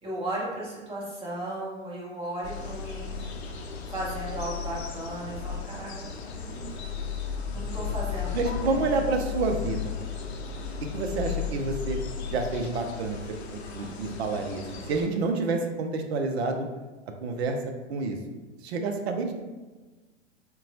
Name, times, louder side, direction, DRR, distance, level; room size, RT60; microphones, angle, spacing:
voice 1, 0.0-3.2 3.6-5.9 6.4-6.7 7.5-8.9, right 1 dB, 15° right, -6 dB, 1.1 m, -35 dB
sound 1, 2.4-15.1, left 7 dB, 65° left, 0.5 m, -35 dB
voice 2, 7.4-7.8 8.3-9.9 10.9-12.0 12.3-13.2 13.5-16.7 17.2-17.6 17.9-18.2 18.6-19.3, right 3 dB, 60° right, 4 dB, 0.5 m, -29 dB
4.0 x 2.2 x 2.6 m, 1.2 s
figure-of-eight pair, 105°, 36 cm